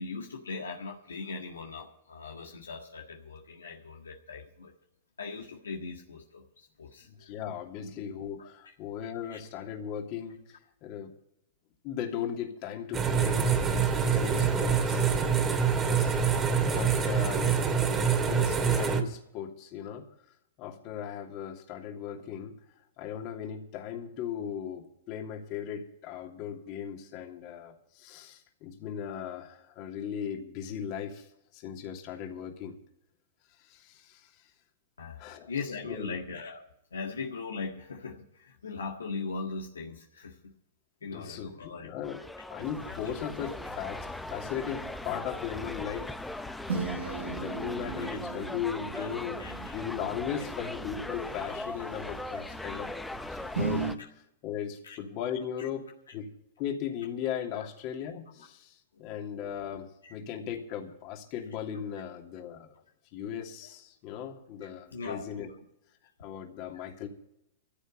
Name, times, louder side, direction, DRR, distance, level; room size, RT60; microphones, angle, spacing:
voice 1, 0.0-4.7 5.2-7.3 7.8-7.9 8.4-8.7 9.3-9.4 35.0-35.2 35.5-36.6 36.9-40.5 41.0-41.9 42.8-43.1 46.7-47.2 48.0-48.2 48.9-49.1 49.4-49.7 54.0-54.1 54.8-55.0 55.6-55.7 57.6-57.7 58.9-59.1 60.0-60.1 64.6-65.3, left 4 dB, 80° left, 1 dB, 1.7 m, -40 dB
voice 2, 7.1-10.4 10.8-11.1 11.8-13.5 14.1-15.1 15.9-16.1 16.6-17.5 18.2-20.1 20.6-22.5 23.0-31.3 31.5-32.8 33.6-34.3 35.2-35.5 35.8-36.2 41.1-42.2 42.5-46.1 47.0-49.4 49.7-52.9 53.3-53.8 54.4-56.3 56.6-58.7 59.0-62.7 63.1-65.5 66.2-67.1, left 9 dB, 45° left, 3 dB, 2.8 m, -37 dB
sound 1, 12.9-19.0, right 6 dB, 20° right, 2.3 m, -25 dB
sound 2, 42.0-54.0, left 2 dB, 5° left, 0.8 m, -39 dB
sound 3, 42.6-53.9, right 5 dB, 75° right, 7.3 m, -39 dB
15.0 x 8.2 x 8.4 m, 0.80 s
figure-of-eight pair, 100°, 0 cm